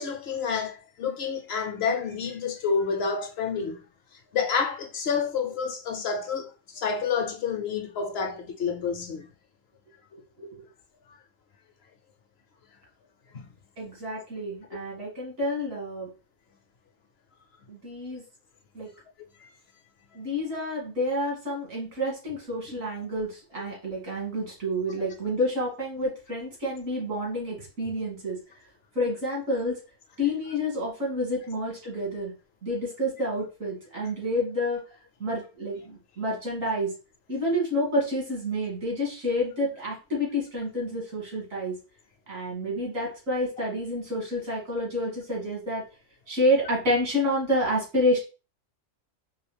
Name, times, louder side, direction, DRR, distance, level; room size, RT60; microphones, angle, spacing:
voice 1, 0.0-3.8 4.3-9.2 13.3-13.5 19.4-19.5, left 6 dB, 60° left, 0.8 m, -29 dB
voice 2, 13.8-16.1 17.7-18.2 18.7-18.9 20.1-28.4 28.9-29.8 30.2-32.3 32.6-34.8 35.2-36.9 37.3-41.8 42.3-45.9 46.3-48.2, equal, 85° right, 2.6 m, -29 dB
4.7 x 3.2 x 3.3 m
omnidirectional pair, 1.3 m